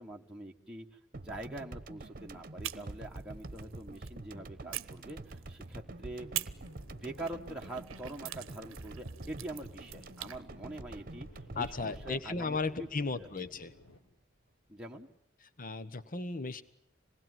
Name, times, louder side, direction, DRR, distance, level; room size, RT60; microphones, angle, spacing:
voice 1, 0.0-6.3 6.9-12.9 13.1-13.3 14.7-15.1, right 1 dB, 5° right, -2 dB, 1.6 m, -44 dB
sound 1, 1.1-13.6, right 2 dB, 45° right, 1.2 m, -47 dB
sound 2, 2.6-4.2 4.7-5.7 6.3-10.4, right 14 dB, 70° right, 0.9 m, -44 dB
sound 3, 5.8-14.0, left 1 dB, 90° left, 4.2 m, -58 dB
voice 2, 11.5-13.7 15.6-16.6, left 3 dB, 45° left, 13 dB, 1.2 m, -35 dB
26.5 x 20.0 x 9.4 m, 0.75 s
head